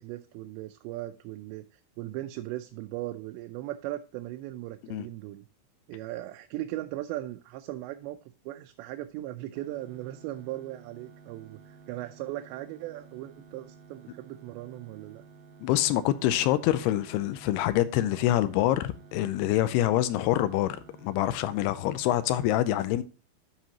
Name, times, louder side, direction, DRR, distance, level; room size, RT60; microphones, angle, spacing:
voice 1, 0.0-5.5 5.9-8.2 8.5-15.2, right 15 dB, 85° right, 2.8 m, -38 dB
sound 1, 9.6-22.5, right 5 dB, 70° right, 1.8 m, -53 dB
voice 2, 15.6-23.0, left 13 dB, 80° left, 2.4 m, -26 dB
13.0 x 4.9 x 2.8 m
omnidirectional pair, 5.1 m